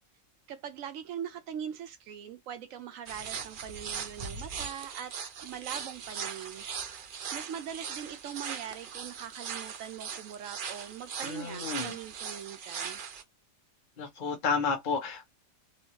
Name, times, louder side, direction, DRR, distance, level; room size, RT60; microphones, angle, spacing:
voice 1, 0.5-5.2 5.4-13.0, right 9 dB, 85° right, 1.0 m, -42 dB
sound 1, 3.1-13.2, right 6 dB, 55° right, 0.6 m, -40 dB
voice 2, 11.2-12.0 14.0-15.3, left 5 dB, 40° left, 1.0 m, -31 dB
3.1 x 2.6 x 2.8 m
omnidirectional pair, 1.4 m